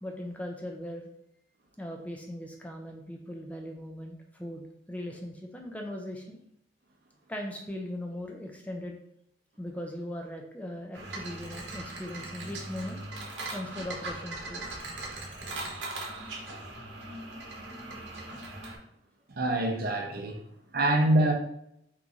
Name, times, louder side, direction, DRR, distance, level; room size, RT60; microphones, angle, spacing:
voice 1, 0.0-1.1 1.8-6.4 7.3-9.0 9.6-13.0 13.5-14.7, left 1 dB, 10° left, 2 dB, 0.3 m, -39 dB
sound 1, 10.9-18.8, right 2 dB, 80° right, 0.9 m, -39 dB
voice 2, 19.3-20.4 20.7-21.3, right 1 dB, 55° right, 3 dB, 0.6 m, -25 dB
3.0 x 2.6 x 3.5 m, 0.74 s
head